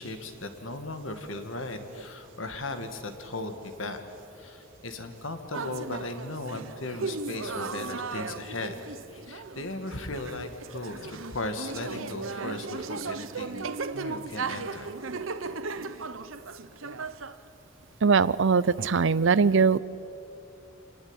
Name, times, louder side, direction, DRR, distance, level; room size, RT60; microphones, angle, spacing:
voice 1, 0.0-4.0 4.3-8.8 9.1-14.9, left 2 dB, 75° left, 7 dB, 2.3 m, -37 dB
sound 1, 5.5-17.4, right 4 dB, 85° right, 1.0 m, -36 dB
voice 2, 18.0-19.8, right 5 dB, 65° right, 19 dB, 0.6 m, -21 dB
27.0 x 19.0 x 9.2 m, 2.8 s
head